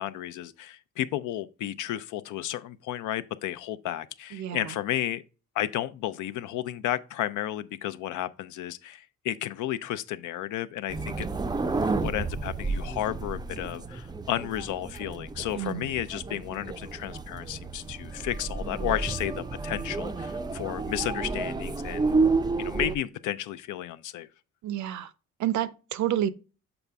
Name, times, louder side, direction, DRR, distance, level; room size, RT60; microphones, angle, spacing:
voice 1, 0.0-5.2 5.5-11.5 11.8-22.2 22.6-24.3, left 12 dB, 85° left, 0.5 m, -33 dB
voice 2, 4.3-4.7 15.5-15.9 24.6-25.1 25.4-26.3, right 11 dB, 70° right, 0.6 m, -29 dB
sound 1, 10.9-23.0, right 3 dB, 15° right, 0.4 m, -31 dB
7.0 x 4.1 x 3.4 m
cardioid pair, 90°, 30 cm